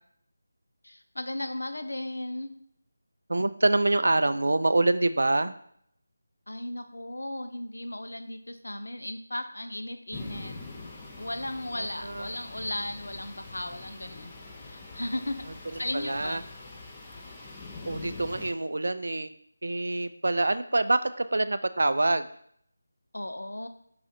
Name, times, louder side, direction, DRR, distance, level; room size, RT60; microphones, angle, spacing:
voice 1, 0.8-2.5 6.5-10.5 11.2-14.3 14.6-15.5 15.8-16.4 23.1-23.7, left 1 dB, 80° left, 8 dB, 0.5 m, -35 dB
voice 2, 3.3-5.5 11.7-12.4 15.7-16.4 17.9-19.3 19.6-22.3, right 2 dB, 70° right, 12 dB, 0.3 m, -26 dB
sound 1, 10.1-18.5, left 3 dB, 15° left, 0.5 m, -44 dB
4.8 x 2.5 x 4.1 m, 0.67 s
figure-of-eight pair, 165°, 0 cm